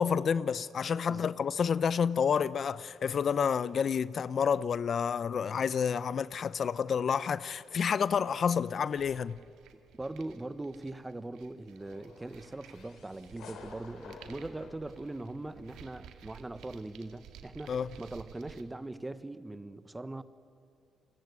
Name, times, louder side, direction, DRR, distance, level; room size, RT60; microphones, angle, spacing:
voice 1, 0.0-9.4 17.7-17.9, left 7 dB, 50° left, 0.6 m, -29 dB
sound 1, 8.9-18.6, right 9 dB, 85° right, 2.1 m, -54 dB
voice 2, 10.0-20.2, right 2 dB, 15° right, 1.2 m, -41 dB
sound 2, 11.8-15.8, left 5 dB, 70° left, 3.2 m, -53 dB
29.5 x 20.5 x 9.6 m
cardioid pair, 90°, 0 cm